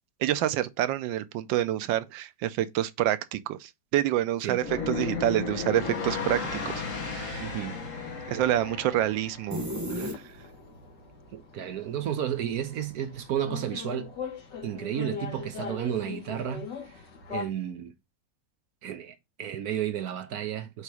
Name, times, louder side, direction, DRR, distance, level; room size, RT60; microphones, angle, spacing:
voice 1, 0.2-7.5 8.3-9.6 9.9-10.1, right 13 dB, 90° right, 1.3 m, -28 dB
sound 1, 4.5-9.6, left 4 dB, 45° left, 1.7 m, -34 dB
sound 2, 6.3-17.5, left 6 dB, 70° left, 2.1 m, -43 dB
voice 2, 7.4-7.8 11.3-14.1 14.6-17.0 17.3-17.9 18.8-20.8, right 10 dB, 65° right, 1.0 m, -32 dB
sound 3, 9.5-10.7, equal, 10° right, 0.9 m, -33 dB
8.1 x 2.9 x 4.8 m
omnidirectional pair, 2.0 m